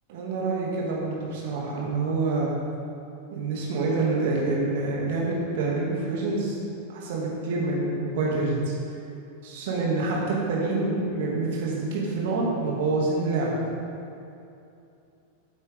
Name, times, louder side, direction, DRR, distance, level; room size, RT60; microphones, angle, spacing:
voice 1, 0.1-2.5 3.3-6.6 6.9-8.7 9.4-13.6, right 3 dB, 55° right, -3 dB, 2.3 m, -27 dB
12.0 x 8.7 x 3.6 m, 2.7 s
figure-of-eight pair, 90°, 0 cm